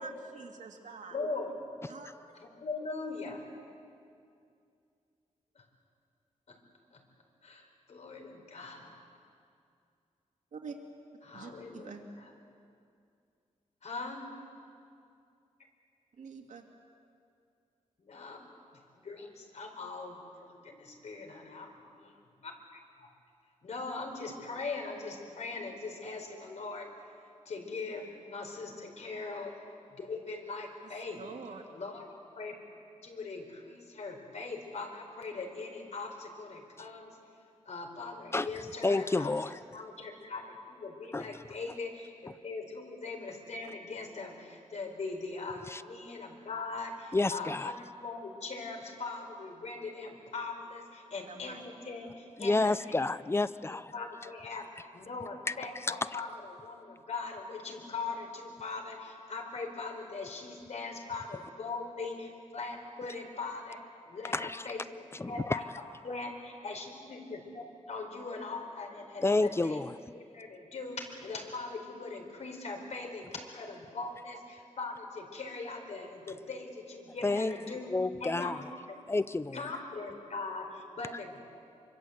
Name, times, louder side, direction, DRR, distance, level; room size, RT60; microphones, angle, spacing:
voice 1, 0.0-1.2 1.9-2.1 10.5-10.8 11.3-12.0 16.2-16.6 31.1-31.6 51.3-51.6, right 5 dB, 80° right, 3 dB, 2.3 m, -46 dB
voice 2, 1.1-1.5 2.4-3.4 6.9-7.0 7.4-9.0 11.2-11.9 12.2-12.3 13.8-14.2 18.0-18.6 19.0-21.7 22.0-22.1 22.4-22.5 23.0-23.1 23.6-26.9 27.5-29.5 29.9-31.2 31.7-32.6 33.0-37.2 37.7-39.3 39.7-52.9 53.9-54.7 54.9-56.3 56.6-63.8 64.1-64.8 65.3-65.6 66.0-66.8 67.9-69.8 70.1-77.9 78.2-78.5 78.9-79.0 79.5-81.4, left 3 dB, 65° left, 3 dB, 4.4 m, -40 dB
voice 3, 38.8-39.6 41.1-41.4 45.7-45.8 47.1-47.7 52.4-53.9 55.5-56.2 64.3-64.7 65.1-65.6 69.2-69.9 77.2-78.6 79.1-79.6, left 2 dB, 20° left, 15 dB, 0.5 m, -30 dB
25.0 x 25.0 x 8.0 m, 2.4 s
wide cardioid pair, 125°, 12 cm